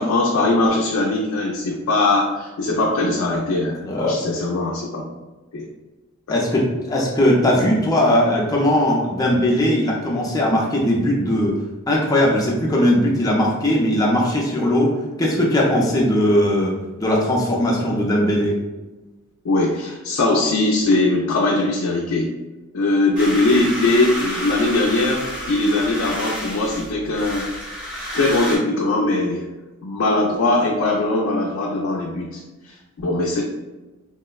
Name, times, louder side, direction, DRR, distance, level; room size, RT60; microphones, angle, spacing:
voice 1, 0.0-5.0 5.5-5.6 6.3-6.4 19.4-22.3 22.7-27.5 28.1-29.5 29.8-33.4, left 2 dB, 80° left, -2 dB, 0.4 m, -20 dB
voice 2, 3.8-4.2 6.3-18.6, left 1 dB, 15° left, -3 dB, 0.5 m, -19 dB
sound 1, 23.2-28.6, equal, 5° right, 0.8 m, -30 dB
3.5 x 2.1 x 2.3 m, 1.1 s
head